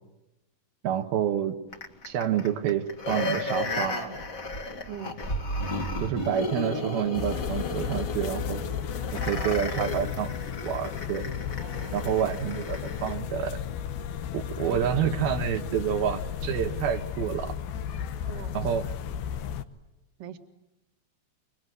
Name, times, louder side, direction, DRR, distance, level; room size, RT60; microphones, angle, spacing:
voice 1, 0.8-1.6 2.0-4.1 6.0-8.6 9.1-10.3 10.6-11.3 11.9-13.6 14.3-17.5 18.5-18.9, right 9 dB, 85° right, 5 dB, 3.2 m, -28 dB
sound 1, 1.7-13.2 13.6-13.7, left 2 dB, 30° left, 1.6 m, -34 dB
voice 2, 4.9-5.2 8.5-8.6 9.0-10.1 11.6-12.1 14.7-15.0 18.2-18.6 20.2-20.4, right 9 dB, 70° right, 6 dB, 3.1 m, -43 dB
sound 2, 7.1-19.6, left 8 dB, 80° left, 3.0 m, -34 dB
25.5 x 24.0 x 9.5 m, 0.95 s
omnidirectional pair, 4.2 m